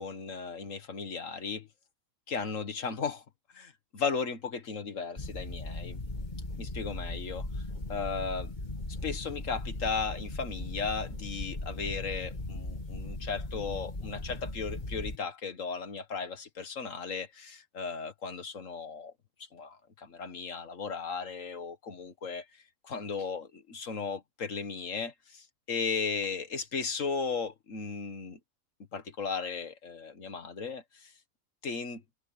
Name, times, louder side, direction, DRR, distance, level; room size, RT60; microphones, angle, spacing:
voice 1, 0.0-1.7 2.3-3.2 3.5-6.0 6.6-7.5 7.9-8.5 9.0-19.1 19.5-22.5 22.8-28.4 28.9-31.1 31.6-32.0, left 5 dB, 70° left, 1.9 m, -36 dB
sound 1, 5.2-15.2, left 2 dB, 35° left, 2.5 m, -38 dB
omnidirectional pair, 1.4 m